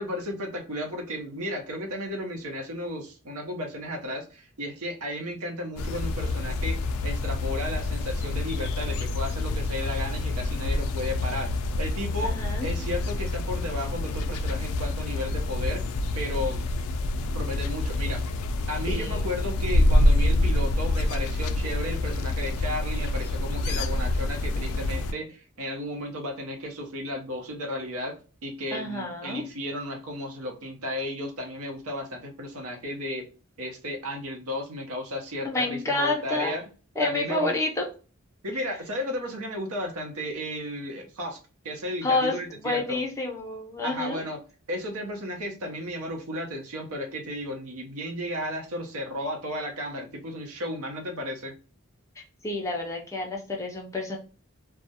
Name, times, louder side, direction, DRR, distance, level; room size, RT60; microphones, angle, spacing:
voice 1, 0.0-11.5 11.8-15.8 16.1-16.6 17.3-18.2 18.7-28.1 28.4-33.3 33.6-36.6 37.0-37.6 38.4-41.4 41.6-43.0 43.8-44.4 44.7-51.5, left 1 dB, 90° right, 3 dB, 0.7 m, -34 dB
sound 1, 5.8-25.1, left 1 dB, 90° left, 0.3 m, -27 dB
voice 2, 12.2-12.7 18.9-19.2 28.7-29.4 35.4-36.6 37.0-37.9 38.5-38.6 42.0-44.2 52.2-54.2, left 2 dB, 15° left, 0 dB, 0.4 m, -29 dB
2.3 x 2.0 x 2.7 m, 0.36 s
head